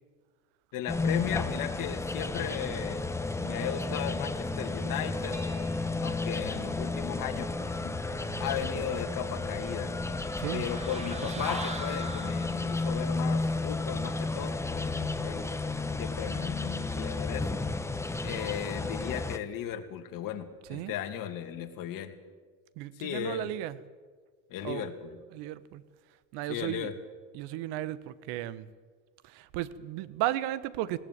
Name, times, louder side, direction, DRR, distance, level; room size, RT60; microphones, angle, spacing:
voice 1, 0.7-3.0 3.4-5.4 6.0-10.0 10.5-15.5 16.0-17.6 18.2-22.1 23.0-23.5 24.5-25.1 26.5-26.9, left 10 dB, 50° left, 5 dB, 2.7 m, -36 dB
sound 1, 0.9-19.4, left 3 dB, 5° left, 1.1 m, -32 dB
sound 2, 5.3-12.9, right 3 dB, 35° right, 6.2 m, -58 dB
sound 3, 10.3-12.9, right 3 dB, 15° right, 2.2 m, -42 dB
voice 2, 10.4-10.7 11.4-11.5 20.7-20.9 22.8-23.8 24.6-24.9 25.3-25.8 26.3-26.9 27.3-28.7 29.2-31.0, right 14 dB, 65° right, 16 dB, 1.3 m, -35 dB
19.5 x 17.0 x 9.6 m, 1.5 s
supercardioid pair, 115°, 43 cm